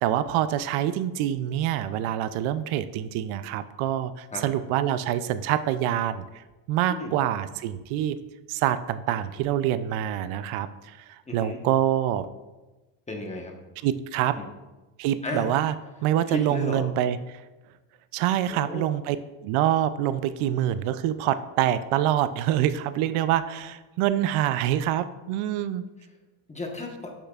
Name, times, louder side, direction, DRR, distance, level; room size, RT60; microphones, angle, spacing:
voice 1, 0.0-8.2 8.5-12.3 13.8-14.4 15.0-15.7 16.0-17.4 18.1-19.2 19.4-25.8, right 11 dB, 80° right, 13 dB, 0.5 m, -26 dB
voice 2, 11.3-11.6 13.1-13.5 14.3-14.5 15.2-15.5 16.3-16.9 18.5-18.8 26.5-27.1, left 2 dB, 15° left, 1 dB, 1.1 m, -33 dB
7.6 x 6.9 x 2.4 m, 1.1 s
cardioid pair, 115°, 50 cm